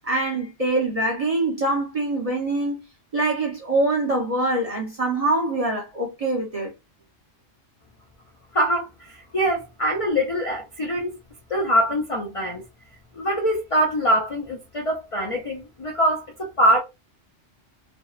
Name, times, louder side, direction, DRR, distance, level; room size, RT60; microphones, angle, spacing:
voice 1, 0.0-2.8 3.1-6.7, right 2 dB, 45° right, 0.5 m, -24 dB
voice 2, 8.5-11.1 11.5-12.6 13.1-16.8, equal, 55° left, 0.3 m, -23 dB
2.6 x 2.0 x 2.3 m
omnidirectional pair, 1.3 m